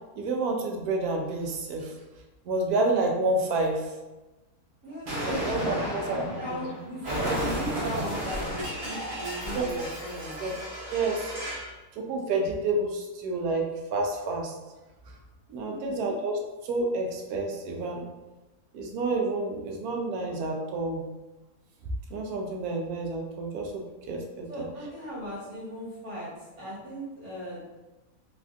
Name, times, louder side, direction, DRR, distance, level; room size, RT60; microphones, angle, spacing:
voice 1, 0.2-1.9 2.5-3.9 5.2-6.3 9.5-9.7 10.4-10.5 10.9-11.3 12.0-14.5 15.5-18.1 18.7-21.0 22.1-24.5, right 2 dB, 90° right, 1 dB, 1.1 m, -29 dB
voice 2, 4.8-10.4 15.6-16.1 24.5-27.6, equal, 70° right, -8 dB, 1.9 m, -37 dB
Explosion, 5.1-11.7, equal, 50° right, 1.0 m, -33 dB
3.5 x 2.5 x 2.4 m, 1.1 s
omnidirectional pair, 1.6 m